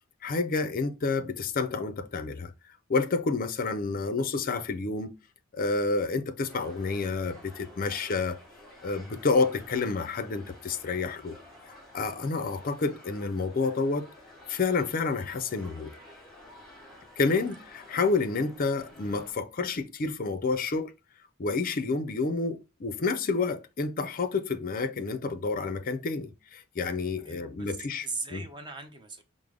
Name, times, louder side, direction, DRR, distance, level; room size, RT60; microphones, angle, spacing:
voice 1, 0.2-2.5 2.9-5.1 5.5-8.4 8.8-11.4 11.7-14.1 14.5-15.9 17.2-20.9 21.4-28.4, left 4 dB, 40° left, 0.4 m, -29 dB
sound 1, 6.5-19.3, left 1 dB, ahead, 1.6 m, -51 dB
voice 2, 27.2-29.2, right 3 dB, 20° right, 0.6 m, -39 dB
4.8 x 2.0 x 3.6 m
head